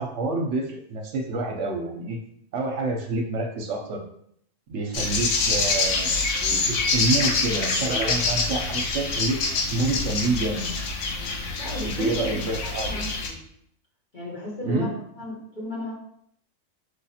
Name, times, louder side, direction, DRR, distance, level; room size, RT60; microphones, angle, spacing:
voice 1, 0.0-2.2 2.5-4.0 4.7-9.4 9.7-10.7 11.8-13.0 14.6-14.9, right 2 dB, 65° right, 2 dB, 0.9 m, -28 dB
sound 1, 4.9-13.3, left 3 dB, 65° left, 1.0 m, -26 dB
voice 2, 11.6-13.4 14.1-15.9, left 1 dB, 35° left, -4 dB, 1.3 m, -35 dB
5.0 x 2.4 x 4.1 m, 0.70 s
omnidirectional pair, 1.4 m